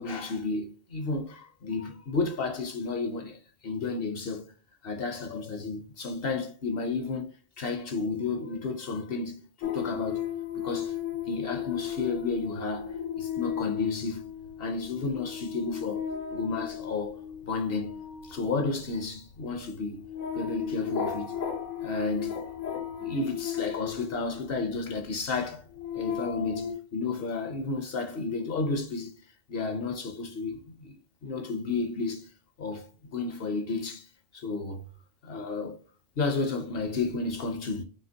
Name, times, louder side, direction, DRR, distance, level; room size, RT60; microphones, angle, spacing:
voice 1, 0.0-4.5 4.8-7.3 7.6-10.2 10.5-11.0 11.3-14.3 14.6-17.2 17.5-20.0 20.3-21.4 21.8-22.4 23.0-25.6 25.9-29.1 29.5-32.3 32.6-34.8 35.2-35.8 36.2-37.8, left 4 dB, 55° left, 0.8 m, -32 dB
sound 1, 9.6-24.7 25.4-26.7, left 8 dB, 80° left, 1.2 m, -35 dB
5.7 x 2.8 x 2.7 m
omnidirectional pair, 1.3 m